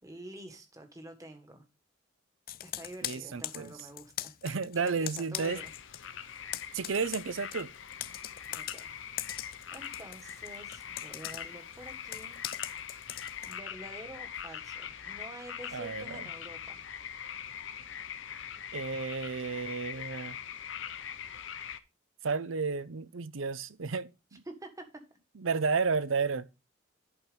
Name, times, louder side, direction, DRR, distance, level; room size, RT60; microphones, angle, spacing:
voice 1, 0.0-1.7 2.6-4.4 4.7-5.7 8.5-8.9 9.7-12.4 12.9-16.9 24.4-24.8, right 1 dB, 15° right, 1.6 m, -48 dB
Computer keyboard, 2.5-6.1 6.3-13.6, left 13 dB, 45° left, 0.4 m, -41 dB
voice 2, 3.0-3.7 4.4-5.6 6.7-7.7 15.7-16.2 18.7-20.4 22.2-24.4 25.4-26.5, right 5 dB, 80° right, 0.7 m, -32 dB
sound 1, 5.3-21.8, left 8 dB, 65° left, 0.8 m, -42 dB
11.0 x 4.7 x 5.2 m
head